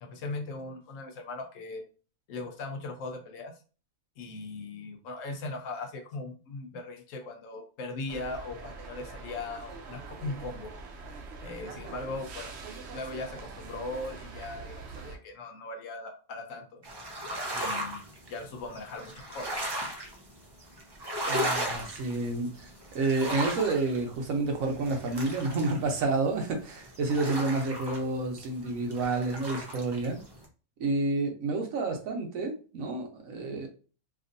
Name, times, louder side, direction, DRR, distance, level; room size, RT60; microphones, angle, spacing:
voice 1, 0.0-1.8 2.3-3.5 4.2-10.7 11.4-12.5 12.9-16.8 17.5-18.0 18.3-19.5, left 2 dB, 75° left, 5 dB, 1.0 m, -39 dB
sound 1, 8.1-15.2, right 4 dB, 65° right, 0.8 m, -44 dB
sound 2, 16.8-30.4, equal, 40° right, 0.3 m, -36 dB
voice 2, 21.3-22.7 22.9-30.2 30.8-33.7, right 3 dB, 90° right, 3 dB, 1.1 m, -29 dB
2.9 x 2.5 x 2.5 m, 0.36 s
omnidirectional pair, 1.4 m